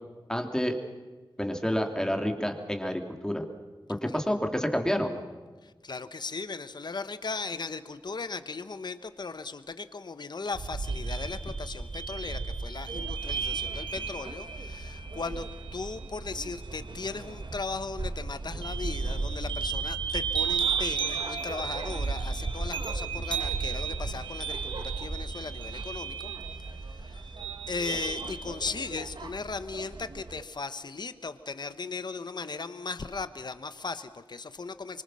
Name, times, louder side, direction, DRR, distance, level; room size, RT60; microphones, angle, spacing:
voice 1, 0.3-0.8 1.4-3.5 4.0-5.2, equal, 10° left, 4 dB, 2.8 m, -29 dB
voice 2, 5.6-27.4 27.7-35.0, left 4 dB, 60° left, 11 dB, 1.1 m, -37 dB
sound 1, 10.5-28.7, right 5 dB, 85° right, 3.7 m, -34 dB
sound 2, 12.9-30.4, right 3 dB, 65° right, 1.5 m, -43 dB
25.5 x 24.5 x 6.4 m, 1.4 s
wide cardioid pair, 85°, 8 cm